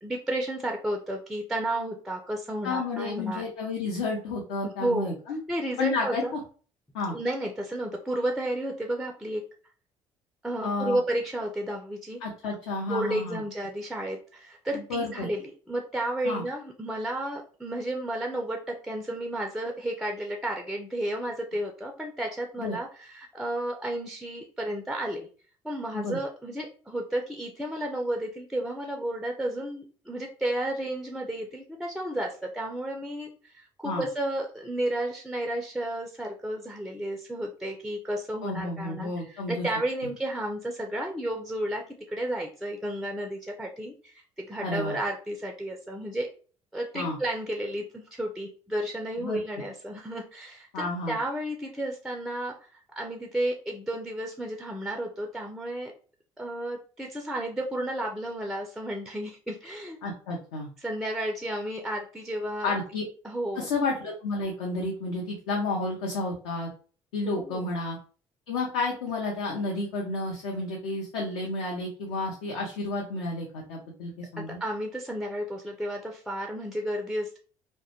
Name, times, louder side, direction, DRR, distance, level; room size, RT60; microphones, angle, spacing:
voice 1, 0.0-3.4 4.6-5.1 5.5-6.3 7.1-9.4 10.4-12.2 12.9-25.3 25.6-46.3 46.7-50.7 51.1-55.9 56.4-60.0 60.8-62.7 63.2-63.7 67.2-67.7 74.4-77.4, right 1 dB, ahead, 2 dB, 0.4 m, -32 dB
voice 2, 2.6-5.4 5.8-6.4 6.9-7.2 10.6-11.0 12.2-13.4 14.7-15.3 16.2-16.4 22.6-22.8 25.9-26.2 33.8-34.0 38.4-39.7 44.6-45.0 46.9-47.2 49.2-49.4 50.7-51.2 60.0-60.7 62.6-63.0 63.5-66.7 67.1-68.0 68.5-74.6, left 3 dB, 70° left, -2 dB, 0.5 m, -31 dB
2.1 x 2.1 x 2.8 m, 0.39 s
figure-of-eight pair, 50°, 15 cm